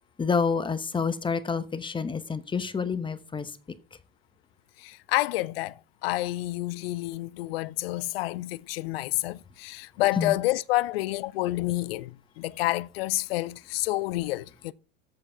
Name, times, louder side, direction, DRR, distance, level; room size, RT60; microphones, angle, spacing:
voice 1, 0.2-3.5 10.2-10.3, left 5 dB, 15° left, 0.9 m, -28 dB
voice 2, 4.8-14.7, left 18 dB, 75° left, 0.5 m, -29 dB
7.7 x 6.9 x 5.5 m
hypercardioid pair, 90°, 30 cm